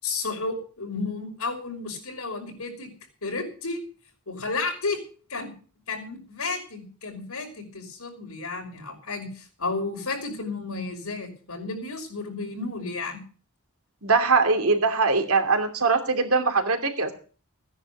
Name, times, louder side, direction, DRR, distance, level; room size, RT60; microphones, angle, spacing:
voice 1, 0.0-2.9 3.2-3.8 4.3-5.0 5.3-5.5 5.9-13.2, left 3 dB, 90° left, 2 dB, 5.6 m, -32 dB
voice 2, 14.0-17.1, right 4 dB, 80° right, 5 dB, 2.7 m, -22 dB
17.0 x 10.0 x 6.7 m, 0.40 s
head